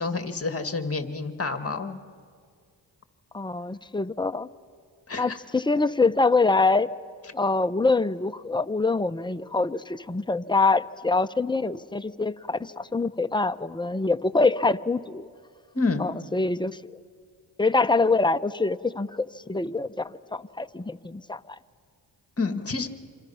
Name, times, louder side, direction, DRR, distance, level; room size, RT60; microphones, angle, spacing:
voice 1, 0.0-2.0 5.1-5.4 15.7-16.1 22.4-22.9, left 3 dB, 30° left, 7 dB, 1.9 m, -28 dB
voice 2, 3.3-4.5 5.2-6.9 7.3-15.3 16.0-16.8 17.6-21.4, left 3 dB, 10° left, 10 dB, 0.8 m, -25 dB
27.0 x 26.5 x 5.8 m, 2.1 s
cardioid pair, 55°, 48 cm